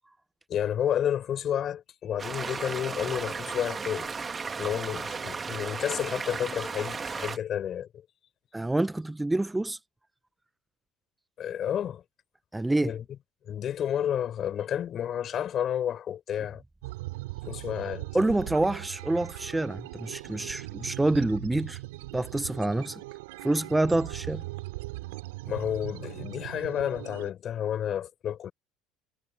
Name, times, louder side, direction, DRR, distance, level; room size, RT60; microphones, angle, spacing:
voice 1, 0.5-4.1 4.6-7.9 11.4-12.0 12.8-13.0 13.5-16.6 17.4-18.1 25.5-28.5, left 10 dB, 50° left, 6.3 m, -31 dB
sound 1, 2.2-7.4, right 5 dB, 30° right, 2.4 m, -35 dB
voice 2, 8.5-9.8 12.5-12.9 18.1-21.8 22.1-23.0 23.4-24.4, right 2 dB, 10° right, 0.8 m, -27 dB
sound 2, 16.8-27.3, right 20 dB, 80° right, 4.6 m, -39 dB
hypercardioid pair, 75°, 0 cm